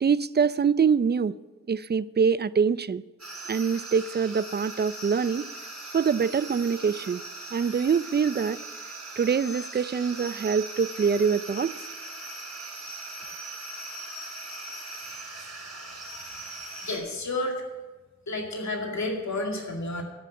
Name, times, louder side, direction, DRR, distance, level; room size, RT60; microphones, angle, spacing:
voice 1, 0.0-1.3 1.7-3.0 3.5-5.5 5.9-7.2 7.5-8.6 9.2-11.8, right 6 dB, 35° right, 18 dB, 0.4 m, -24 dB
sound 1, 3.2-17.0, right 2 dB, 60° right, 5.0 m, -40 dB
voice 2, 16.8-17.6 18.3-20.0, left 2 dB, 70° left, 1 dB, 2.3 m, -31 dB
13.5 x 5.7 x 8.6 m, 1.3 s
cardioid pair, 45°, 29 cm